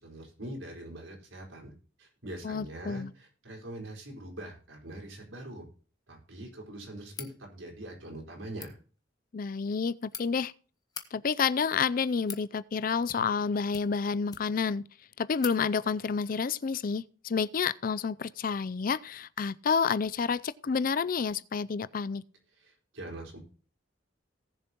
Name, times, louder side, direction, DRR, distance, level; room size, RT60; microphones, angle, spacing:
voice 1, 0.0-1.7 2.0-5.6 6.1-8.8 22.6-23.4, right 1 dB, 75° right, 4.5 m, -43 dB
voice 2, 2.4-3.1 9.3-10.5 11.1-14.8 15.2-22.2, left 5 dB, 45° left, 0.4 m, -29 dB
sound 1, 7.1-7.4 8.4-8.7 9.7-10.2 10.8-11.1 11.9-12.5 13.0-13.4 13.7-14.7 15.0-15.1 15.4-15.6, left 6 dB, 20° left, 1.1 m, -43 dB
18.5 x 7.0 x 3.0 m
head